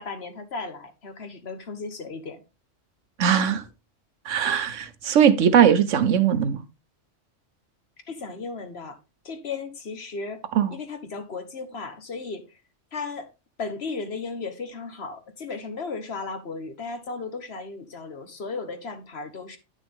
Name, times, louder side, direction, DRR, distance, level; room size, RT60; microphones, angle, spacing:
voice 1, 0.0-2.4 8.1-9.0 9.2-12.5 12.9-13.3 13.6-19.6, left 4 dB, 55° left, 1.5 m, -35 dB
voice 2, 3.2-3.6 4.3-6.6 10.5-10.7, right 8 dB, 80° right, 1.2 m, -20 dB
9.6 x 6.2 x 3.6 m
omnidirectional pair, 1.3 m